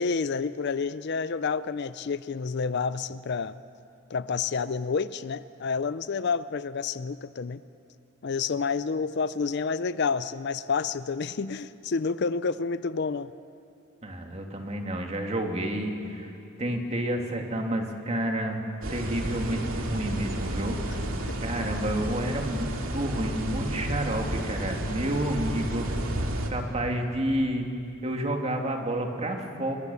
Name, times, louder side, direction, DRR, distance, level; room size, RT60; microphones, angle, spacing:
voice 1, 0.0-3.6 4.1-7.6 8.2-13.3 20.9-21.4, left 5 dB, 55° left, 15 dB, 0.5 m, -29 dB
voice 2, 14.0-16.3 16.6-18.6 18.9-20.8 21.4-25.9 26.5-27.7 28.0-29.7, right 1 dB, 30° right, 2 dB, 2.4 m, -30 dB
sound 1, 18.8-26.5, right 1 dB, 90° right, 2.4 m, -32 dB
26.5 x 20.0 x 7.0 m, 2.6 s
head